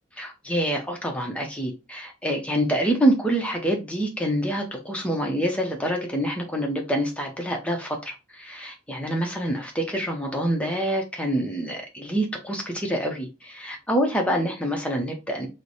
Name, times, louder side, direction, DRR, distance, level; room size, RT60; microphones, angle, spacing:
voice 1, 0.2-15.5, right 1 dB, 5° left, 0.7 m, -26 dB
3.2 x 2.1 x 4.0 m
head